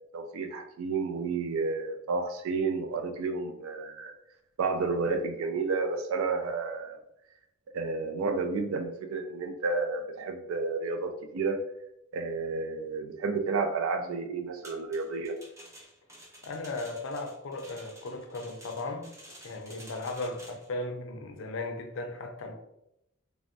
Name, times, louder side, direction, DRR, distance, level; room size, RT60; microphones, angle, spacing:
voice 1, 0.1-4.1 4.6-7.0 7.7-11.6 12.1-15.4, right 4 dB, 80° right, 5 dB, 0.3 m, -31 dB
sound 1, 14.6-20.7, right 1 dB, 15° right, 0.5 m, -51 dB
voice 2, 16.4-19.1 19.4-22.5, left 2 dB, 65° left, 4 dB, 0.4 m, -36 dB
3.3 x 2.0 x 2.5 m, 0.82 s
head